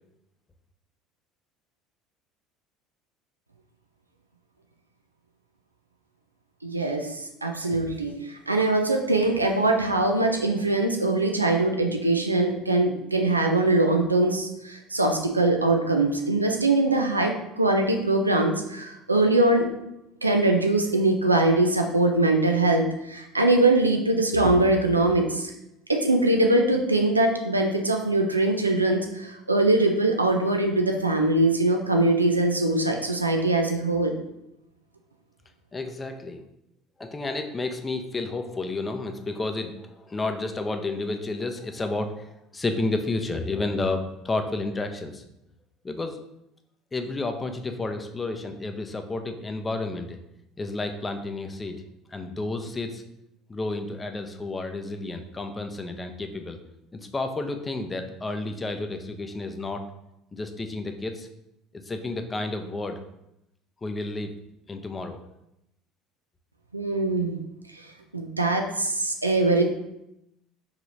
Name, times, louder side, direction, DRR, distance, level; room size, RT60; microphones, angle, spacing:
voice 1, 6.6-19.7 20.2-25.5 25.9-34.1 66.7-67.4 68.1-69.6, right 2 dB, 90° right, 3 dB, 0.4 m, -22 dB
voice 2, 35.7-36.4 37.0-45.2 45.8-46.2 46.9-50.2 50.6-51.8 52.1-53.0 53.5-56.6 57.1-59.8 60.3-61.3 61.9-63.0 63.8-64.3 64.7-65.2, left 2 dB, 20° left, 6 dB, 0.5 m, -31 dB
4.7 x 3.0 x 2.6 m, 0.84 s
figure-of-eight pair, 65°, 0 cm